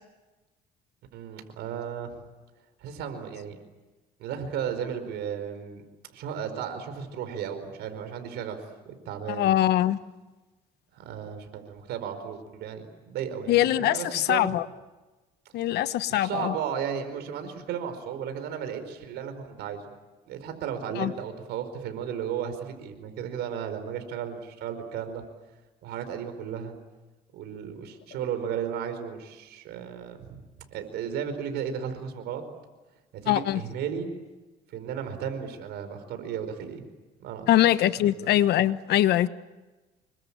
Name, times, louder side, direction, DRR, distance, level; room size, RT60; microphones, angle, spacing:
voice 1, 1.1-2.2 2.8-3.6 4.2-5.8 6.1-8.6 8.8-9.6 10.9-14.5 16.1-19.8 20.3-25.2 25.8-26.7 27.3-30.4 30.7-32.4 33.1-34.1 34.7-36.8 37.2-37.5 38.0-38.3, right 8 dB, 80° right, 4.9 m, -34 dB
voice 2, 9.3-10.0 13.5-14.7 15.5-16.5 21.0-21.1 33.3-33.6 37.5-39.3, left 13 dB, 75° left, 1.2 m, -23 dB
27.5 x 23.5 x 8.8 m
cardioid pair, 110°, 17 cm